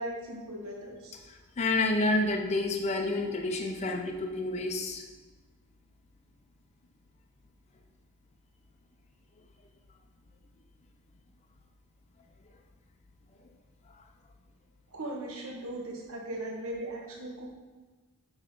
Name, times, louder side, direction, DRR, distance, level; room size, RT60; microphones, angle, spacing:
voice 1, 0.0-1.2 14.9-17.5, right 1 dB, 70° right, -1 dB, 1.3 m, -38 dB
voice 2, 1.3-5.0 13.9-14.0, left 2 dB, 30° left, 2 dB, 0.5 m, -29 dB
7.6 x 4.9 x 5.2 m, 1.3 s
head